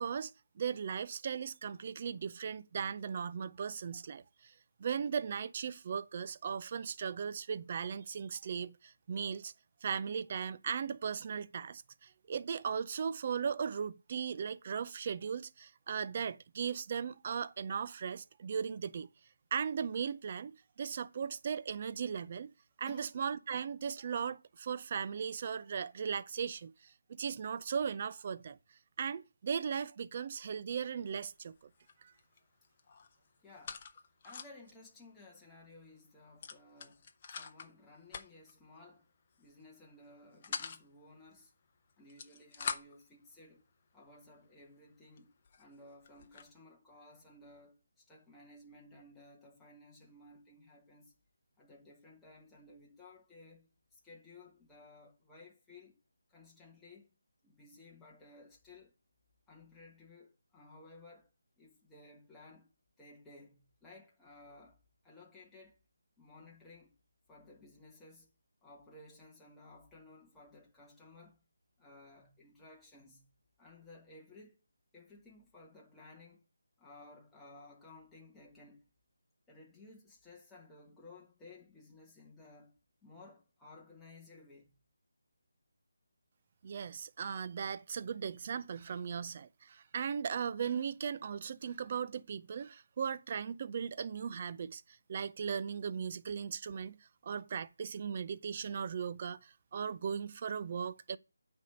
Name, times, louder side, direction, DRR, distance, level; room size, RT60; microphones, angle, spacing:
voice 1, 0.0-4.5 4.8-9.5 9.8-19.1 19.5-20.5 20.8-22.5 22.8-28.6 29.0-31.5 32.0-32.1 86.6-97.0 97.2-101.2, right 7 dB, 35° right, 0.4 m, -37 dB
sound 1, 31.0-31.3 31.5-32.4 32.6-34.7 35.1-35.2 35.4-35.6 36.4-37.7 38.1-38.5 39.3-39.6 40.0-40.8 41.9-43.1 43.8-43.9 44.5-44.6 45.2-45.3 45.4-46.5, left 6 dB, 30° left, 0.8 m, -44 dB
voice 2, 33.4-33.8 34.2-39.1 39.4-41.5 42.0-43.6 43.9-51.1 51.6-56.0 56.3-57.1 57.4-58.9 59.5-61.3 61.6-62.7 63.0-64.8 65.0-65.8 66.2-66.9 67.3-68.3 68.6-71.4 71.8-73.3 73.6-74.6 74.9-76.4 76.8-78.9 79.5-84.8, left 2 dB, 5° left, 1.4 m, -57 dB
9.1 x 3.5 x 6.6 m
figure-of-eight pair, 170°, 0 cm